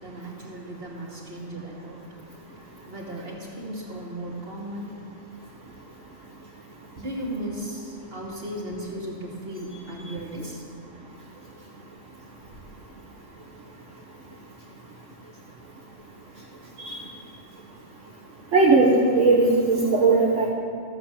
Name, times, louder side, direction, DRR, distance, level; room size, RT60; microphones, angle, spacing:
voice 1, 0.0-2.0 2.9-4.9 6.9-10.6, right 1 dB, 45° right, -3 dB, 2.5 m, -36 dB
voice 2, 18.5-20.5, right 3 dB, 70° right, -5 dB, 1.7 m, -18 dB
14.5 x 8.1 x 7.1 m, 2.3 s
omnidirectional pair, 1.3 m